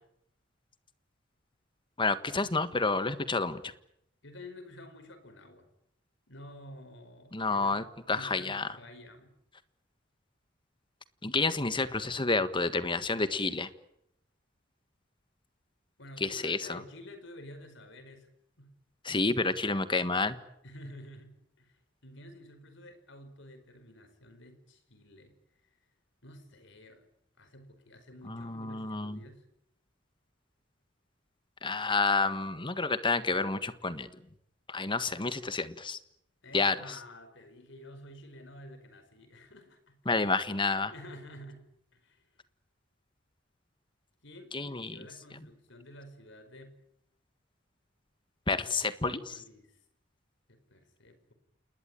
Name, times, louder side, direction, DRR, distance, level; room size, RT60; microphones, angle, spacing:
voice 1, 2.0-3.6 7.3-8.7 11.2-13.7 16.2-16.8 19.0-20.4 28.3-29.2 31.6-34.1 34.7-36.0 36.5-36.8 40.0-40.9 44.5-45.0 48.5-49.3, left 3 dB, 25° left, 12 dB, 1.5 m, -29 dB
voice 2, 4.2-5.7 6.3-7.8 8.1-9.3 16.0-18.3 18.6-18.7 20.6-25.3 26.2-27.0 27.4-29.5 36.4-40.0 40.9-41.7 41.9-42.3 44.2-46.8 49.0-49.8 50.5-51.3, left 1 dB, 65° left, 10 dB, 5.0 m, -50 dB
28.5 x 20.0 x 9.1 m, 0.75 s
head